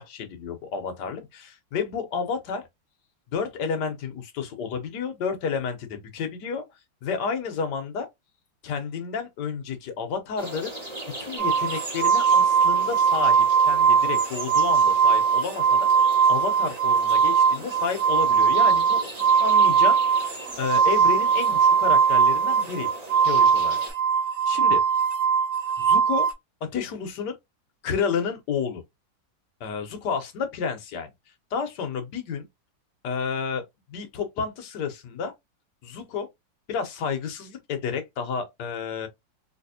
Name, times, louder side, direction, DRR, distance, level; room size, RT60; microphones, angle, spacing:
voice 1, 0.0-2.6 3.3-6.6 7.0-8.1 8.6-10.7 11.2-15.9 16.3-19.1 19.4-20.0 20.6-22.9 23.2-23.8 24.5-24.8 25.8-26.3 26.7-27.3 27.8-28.8 29.6-31.1 31.5-32.4 33.0-33.6 33.9-35.3 35.8-36.3 36.7-39.1, left 6 dB, 65° left, 1.4 m, -30 dB
sound 1, 10.4-23.9, right 1 dB, 25° right, 1.3 m, -39 dB
sound 2, 11.4-26.3, right 6 dB, 55° right, 1.1 m, -20 dB
3.3 x 3.0 x 2.7 m
omnidirectional pair, 2.0 m